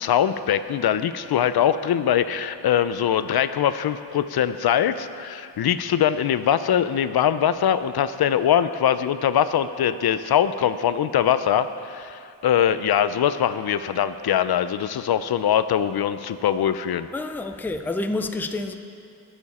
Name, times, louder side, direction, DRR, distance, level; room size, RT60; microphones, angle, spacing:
voice 1, 0.0-17.1, left 9 dB, 65° left, 12 dB, 0.5 m, -22 dB
voice 2, 17.1-18.7, left 2 dB, 5° left, 7 dB, 0.4 m, -28 dB
21.0 x 7.0 x 4.2 m, 2.6 s
wide cardioid pair, 135°, 41 cm